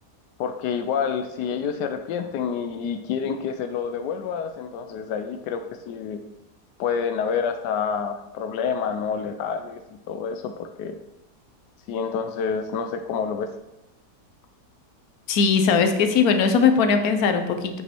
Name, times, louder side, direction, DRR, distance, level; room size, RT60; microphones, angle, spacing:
voice 1, 0.4-6.2 6.8-9.8 10.1-11.0 11.9-13.5, left 6 dB, 85° left, 7 dB, 1.2 m, -28 dB
voice 2, 15.3-17.8, left 5 dB, 65° left, 7 dB, 1.3 m, -19 dB
8.1 x 6.3 x 4.4 m, 0.92 s
omnidirectional pair, 1.8 m